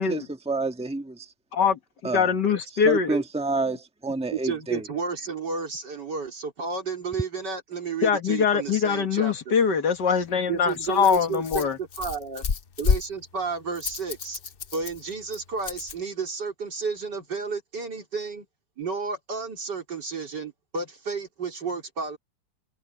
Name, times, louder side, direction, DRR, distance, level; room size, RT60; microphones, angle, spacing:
voice 1, 0.0-1.3 2.0-2.3 2.8-4.8, right 3 dB, 5° right, 1.3 m, -29 dB
voice 2, 1.5-3.1 8.0-11.8, left 6 dB, 70° left, 2.1 m, -23 dB
voice 3, 4.3-9.6 10.5-12.5 12.8-14.4 14.7-18.5 18.8-22.2, right 5 dB, 70° right, 4.1 m, -32 dB
Rattle, 10.0-16.0, left 6 dB, 50° left, 0.7 m, -32 dB
omnidirectional pair, 1.9 m